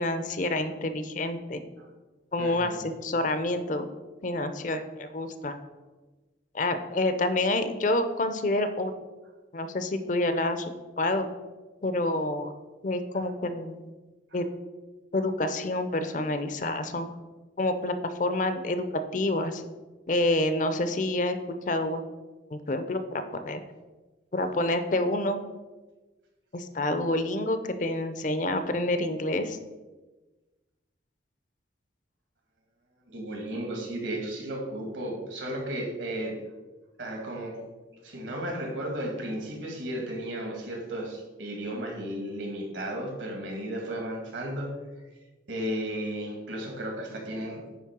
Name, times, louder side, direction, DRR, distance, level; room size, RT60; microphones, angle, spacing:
voice 1, 0.0-1.6 2.3-3.9 4.2-5.5 6.5-8.9 9.5-11.3 11.8-12.5 12.8-13.9 14.3-14.5 15.1-17.1 17.6-18.8 19.1-19.6 20.1-21.4 21.7-22.1 22.5-23.6 24.3-25.4 26.5-29.6, left 2 dB, 40° left, 9 dB, 0.5 m, -28 dB
voice 2, 2.4-2.8 33.1-36.4 37.0-37.6 38.0-44.7 45.5-47.6, right 1 dB, 75° right, 1 dB, 2.0 m, -34 dB
9.2 x 3.2 x 6.0 m, 1.2 s
head